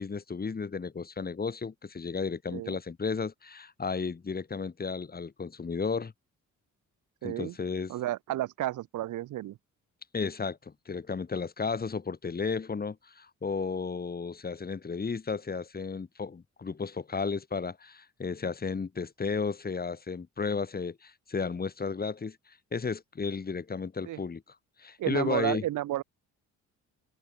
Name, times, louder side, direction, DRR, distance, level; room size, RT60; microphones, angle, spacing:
voice 1, 0.0-6.1 7.2-7.9 10.1-22.4 22.7-24.4 24.8-25.6, left 5 dB, 30° left, 2.5 m, -33 dB
voice 2, 7.2-7.5 7.9-9.6 24.1-24.2 25.0-26.0, right 14 dB, 80° right, 1.9 m, -32 dB
cardioid pair, 90°, 30 cm